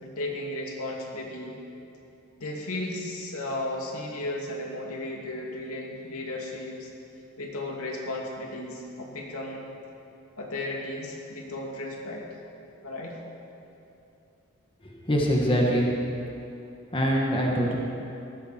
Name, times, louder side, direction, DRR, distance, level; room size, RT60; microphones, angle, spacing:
voice 1, 0.0-1.6 2.4-6.9 7.4-9.6 10.4-12.4 12.8-13.2, left 1 dB, 85° left, -1 dB, 2.5 m, -34 dB
voice 2, 15.1-15.9 16.9-17.7, equal, 25° left, -1 dB, 1.5 m, -23 dB
18.0 x 14.0 x 4.4 m, 2.8 s
head